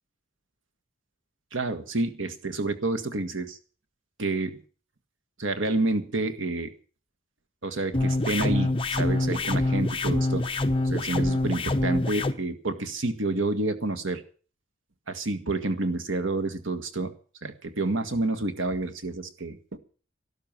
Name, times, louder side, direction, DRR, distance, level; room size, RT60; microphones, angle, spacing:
voice 1, 1.5-3.6 4.2-4.6 5.4-6.7 7.6-10.5 10.9-14.2 15.1-17.1 17.4-19.8, right 2 dB, 80° right, 8 dB, 1.8 m, -29 dB
sound 1, 7.9-12.3, left 2 dB, 30° left, 1.1 m, -25 dB
13.0 x 12.5 x 7.6 m, 0.40 s
head